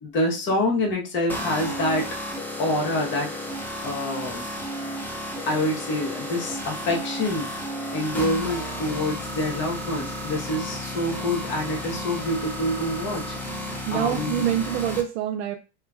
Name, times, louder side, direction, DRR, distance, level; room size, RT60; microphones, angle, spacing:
voice 1, 0.0-2.1 2.6-3.3 3.8-4.5 5.5-7.5 7.9-13.6 13.9-14.4, left 1 dB, 35° left, 1 dB, 1.0 m, -26 dB
sound 1, 1.3-15.0, equal, 5° left, 0.6 m, -33 dB
voice 2, 13.9-15.6, right 10 dB, 80° right, 2 dB, 0.5 m, -25 dB
3.5 x 2.9 x 2.3 m, 0.30 s
supercardioid pair, 120°, 34 cm